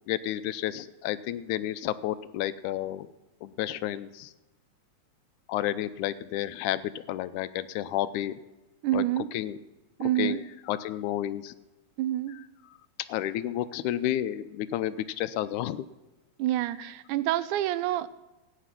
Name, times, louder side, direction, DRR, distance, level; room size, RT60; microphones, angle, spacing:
voice 1, 0.1-3.1 3.4-4.3 5.5-8.3 8.9-9.0 9.3-9.6 10.0-11.6 13.1-15.8, left 12 dB, 85° left, 14 dB, 2.1 m, -31 dB
voice 2, 8.8-9.3 10.0-10.4 12.0-12.4 16.4-18.1, right 14 dB, 90° right, 16 dB, 2.1 m, -27 dB
15.0 x 9.3 x 6.0 m, 1.1 s
omnidirectional pair, 3.4 m